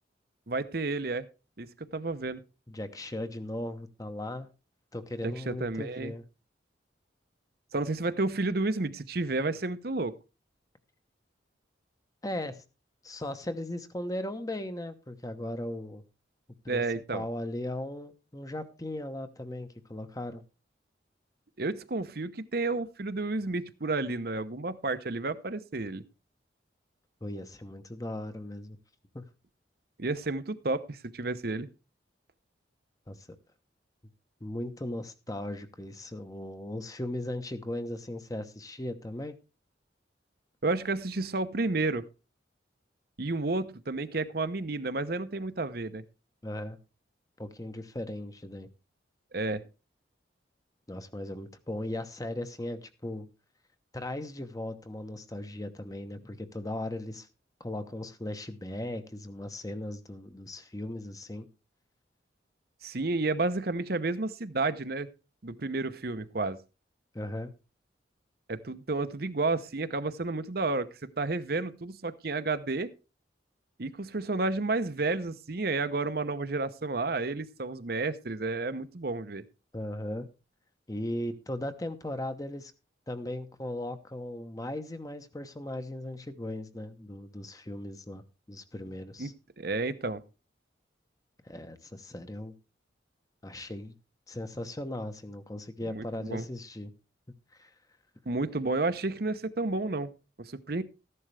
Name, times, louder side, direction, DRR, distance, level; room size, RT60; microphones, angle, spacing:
voice 1, 0.5-1.3 1.6-1.7 1.9-2.4 5.2-6.1 7.7-10.1 16.7-17.2 21.6-26.0 30.0-31.7 40.6-42.1 43.2-46.0 49.3-49.6 62.8-65.1 65.4-66.6 68.5-70.9 71.2-72.9 73.8-79.4 89.2-89.3 89.6-90.2 95.8-96.5 98.3-100.1 100.4-100.8, right 3 dB, 55° right, 0.8 m, -31 dB
voice 2, 2.7-4.5 4.9-6.2 12.2-12.6 13.0-16.0 16.6-16.8 17.1-20.4 27.2-28.8 29.1-29.2 33.1-33.3 34.4-39.3 46.4-46.8 47.4-48.7 50.9-53.3 53.9-57.3 57.6-61.5 67.1-67.5 79.7-80.3 80.9-82.7 83.1-88.2 88.5-89.3 91.4-92.5 93.4-93.9 94.3-96.9 97.5-97.7, left 1 dB, 20° left, 1.0 m, -37 dB
14.0 x 11.0 x 3.4 m
head